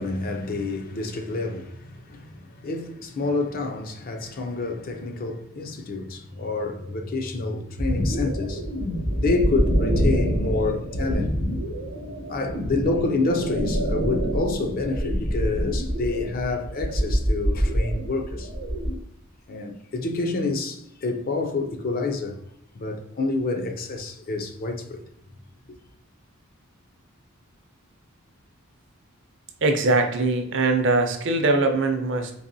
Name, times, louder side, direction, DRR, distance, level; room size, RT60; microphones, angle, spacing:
voice 1, 0.0-8.6 9.2-11.3 12.3-18.5 19.5-22.4 22.7-25.0, left 3 dB, 40° left, 0.4 m, -28 dB
sound 1, 7.8-18.9, equal, 75° left, 1.5 m, -26 dB
voice 2, 29.6-32.3, right 3 dB, 60° right, 0.6 m, -22 dB
4.0 x 2.9 x 2.6 m
head